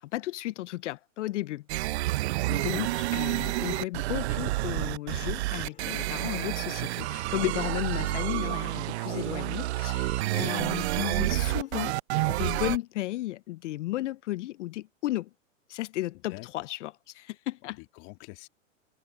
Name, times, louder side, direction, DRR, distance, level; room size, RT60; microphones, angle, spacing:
voice 1, 0.1-1.6 2.5-11.9 12.3-15.3 15.7-17.8, left 16 dB, 60° left, 0.6 m, -34 dB
sound 1, 1.7-12.8, right 18 dB, 55° right, 0.8 m, -29 dB
sound 2, 5.5-11.7, left 9 dB, 20° left, 2.2 m, -55 dB
voice 2, 16.3-16.7 17.7-18.5, left 27 dB, 45° left, 2.6 m, -46 dB
hypercardioid pair, 125°, 40 cm